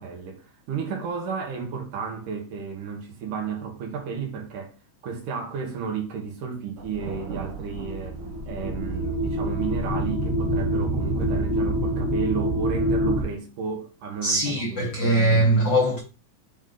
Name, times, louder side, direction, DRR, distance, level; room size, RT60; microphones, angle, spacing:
voice 1, 0.0-4.7 5.0-8.2 8.5-14.9, right 6 dB, 85° right, 2.9 m, -33 dB
Thunder, 6.8-12.1, right 4 dB, 65° right, 3.1 m, -40 dB
sound 1, 7.8-13.2, right 1 dB, 25° left, 1.0 m, -26 dB
voice 2, 14.2-16.0, right 1 dB, 85° left, 1.0 m, -21 dB
7.1 x 3.7 x 3.9 m
omnidirectional pair, 3.6 m